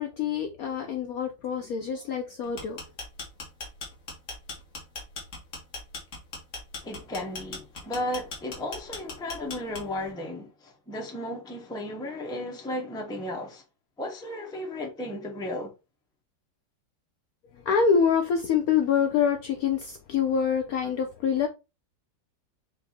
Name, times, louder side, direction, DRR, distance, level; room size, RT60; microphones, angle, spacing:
voice 1, 0.0-2.8 17.7-21.5, left 7 dB, 70° left, 0.9 m, -25 dB
sound 1, 2.4-10.1, left 3 dB, 50° left, 1.5 m, -39 dB
voice 2, 6.8-13.6 14.0-15.7, left 1 dB, 5° left, 0.6 m, -34 dB
4.5 x 2.7 x 4.0 m
omnidirectional pair, 2.0 m